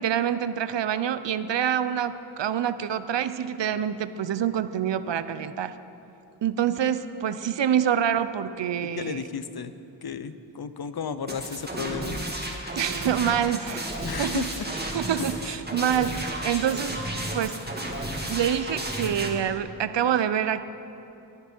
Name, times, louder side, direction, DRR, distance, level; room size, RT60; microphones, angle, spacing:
voice 1, 0.0-5.7 6.4-9.3 12.8-13.9 14.2-14.4 14.9-17.0 17.3-17.6 18.3-20.6, right 9 dB, 80° right, 13 dB, 0.6 m, -26 dB
voice 2, 8.8-9.7 10.0-12.2 14.0-14.7 15.1-15.5, left 6 dB, 60° left, 12 dB, 0.7 m, -34 dB
sound 1, 11.3-19.3, right 1 dB, 20° right, 2.2 m, -33 dB
18.0 x 11.0 x 4.4 m, 2.9 s
cardioid pair, 55°, 43 cm